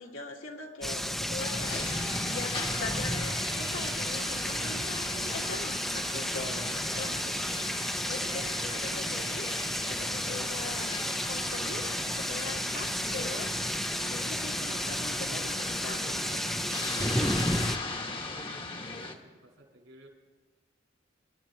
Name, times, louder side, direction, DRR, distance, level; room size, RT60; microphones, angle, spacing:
voice 1, 0.0-7.3 8.1-9.5 9.9-11.0 11.3-13.5 14.1-16.5 17.0-17.5, left 3 dB, 75° left, 0 dB, 2.1 m, -41 dB
sound 1, 0.8-17.8, equal, ahead, 0.6 m, -32 dB
sound 2, 1.4-19.1, left 3 dB, 25° left, 1.1 m, -39 dB
voice 2, 10.0-10.3 18.2-20.1, right 1 dB, 75° right, 0 dB, 5.4 m, -53 dB
28.0 x 12.5 x 3.0 m, 1.5 s
head